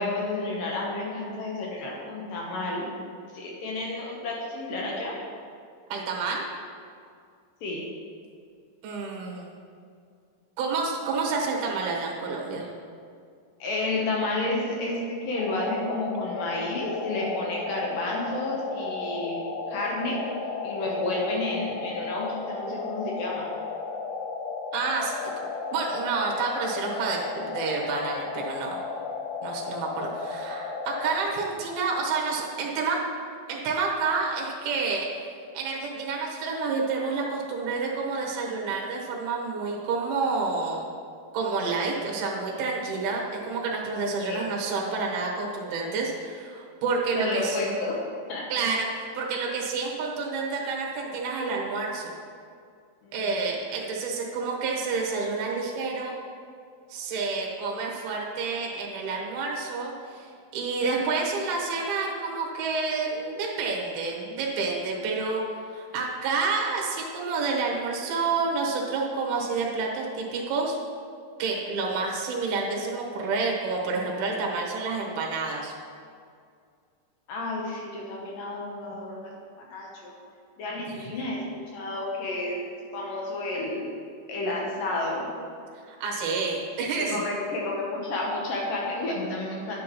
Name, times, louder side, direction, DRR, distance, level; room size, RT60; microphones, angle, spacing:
voice 1, 0.0-2.9 3.3-5.1 7.6-7.9 13.6-19.4 19.7-20.2 20.6-23.5 44.2-44.5 47.1-48.0 48.3-48.4 53.0-53.3 77.3-80.1 80.6-83.9 84.3-85.3 86.8-89.8, left 2 dB, 70° left, -2 dB, 2.3 m, -31 dB
voice 2, 5.9-6.4 8.8-9.6 10.6-12.7 24.7-25.1 25.7-28.8 29.4-33.0 33.5-35.1 35.5-40.9 41.3-47.6 48.5-48.9 49.1-52.1 53.1-56.1 56.9-60.3 60.5-65.4 65.7-70.8 71.4-75.7 81.0-81.1 85.9-87.2, right 4 dB, 75° right, -1 dB, 2.9 m, -29 dB
sound 1, 15.3-31.2, left 4 dB, 90° left, 1.8 m, -34 dB
9.7 x 8.3 x 3.0 m, 2.2 s
omnidirectional pair, 4.6 m